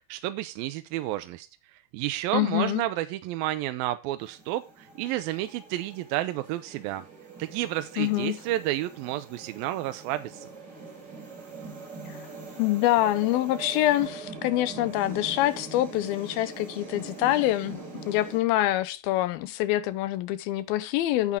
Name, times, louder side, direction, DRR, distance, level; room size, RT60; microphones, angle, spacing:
voice 1, 0.1-1.5 1.9-7.0 7.4-10.5, right 15 dB, 80° right, 2.3 m, -31 dB
voice 2, 2.3-2.8 8.0-8.4 12.6-21.4, left 15 dB, 80° left, 2.5 m, -25 dB
sound 1, 4.2-18.4, right 4 dB, 25° right, 4.5 m, -43 dB
10.0 x 8.7 x 3.5 m
omnidirectional pair, 4.5 m